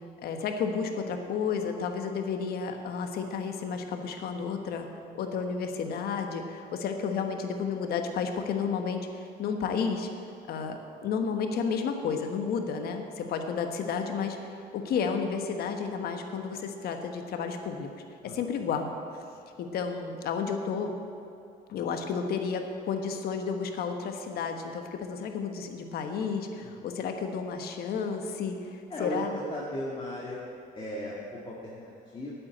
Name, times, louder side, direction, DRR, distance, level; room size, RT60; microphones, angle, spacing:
voice 1, 0.2-10.1 10.5-17.9 18.2-19.2 19.6-20.9 21.7-29.4, left 5 dB, 65° left, 5 dB, 1.3 m, -32 dB
voice 2, 28.9-30.4 30.7-32.3, left 1 dB, 30° left, -4 dB, 1.9 m, -37 dB
8.6 x 8.2 x 8.8 m, 2.5 s
cardioid pair, 110°, 17 cm